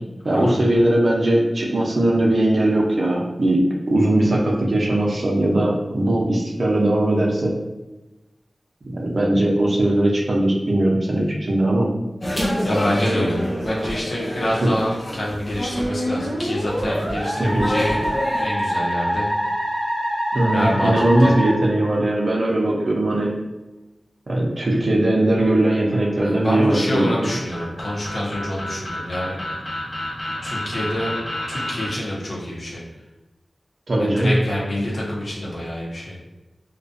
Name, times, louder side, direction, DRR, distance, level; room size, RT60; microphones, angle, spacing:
voice 1, 0.2-7.5 8.9-11.9 14.6-14.7 17.4-17.6 20.3-23.3 24.3-27.3 33.9-34.4, right 1 dB, 60° right, -2 dB, 0.5 m, -19 dB
sound 1, 12.2-18.4, equal, 30° left, 0.5 m, -28 dB
voice 2, 12.6-18.0 18.4-19.3 20.5-21.3 26.2-29.4 30.4-31.1 31.5-32.8 34.0-36.1, left 1 dB, 65° left, -5 dB, 0.7 m, -26 dB
Musical instrument, 15.6-22.4, equal, 20° right, 0.9 m, -25 dB
sound 2, 25.4-31.9, left 1 dB, 10° left, 0.8 m, -31 dB
2.4 x 2.2 x 2.5 m, 1.0 s
wide cardioid pair, 60°, 0 cm